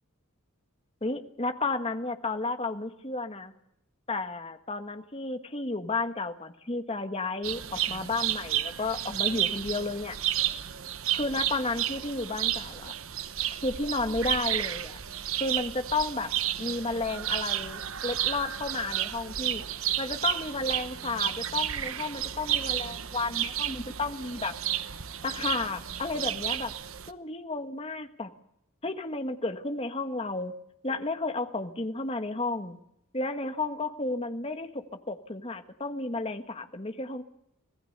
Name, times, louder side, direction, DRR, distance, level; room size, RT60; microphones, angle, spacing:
voice 1, 1.0-3.5 4.1-10.2 11.1-12.9 13.6-15.0 15.4-16.3 16.6-19.6 20.0-24.5 25.2-26.7 27.1-28.3 28.8-30.5 30.8-32.8 33.1-37.2, left 3 dB, 25° left, 8 dB, 1.5 m, -32 dB
sound 1, 7.4-27.1, right 11 dB, 75° right, 1.0 m, -32 dB
25.5 x 18.5 x 6.7 m, 0.81 s
head